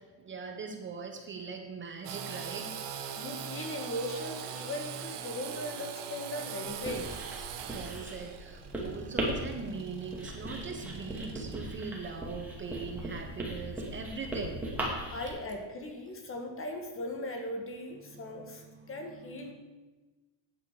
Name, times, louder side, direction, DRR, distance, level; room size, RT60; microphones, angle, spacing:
voice 1, 0.2-2.8 7.4-14.6 18.0-19.5, right 5 dB, 25° right, 4 dB, 1.1 m, -41 dB
Engine / Sawing, 2.0-11.5, right 8 dB, 70° right, 1.4 m, -42 dB
voice 2, 3.2-7.2 15.1-19.5, left 1 dB, 30° left, 4 dB, 1.8 m, -38 dB
Writing, 6.7-15.3, right 1 dB, 5° right, 2.6 m, -38 dB
14.0 x 9.7 x 5.0 m, 1.2 s
cardioid pair, 170°, 44 cm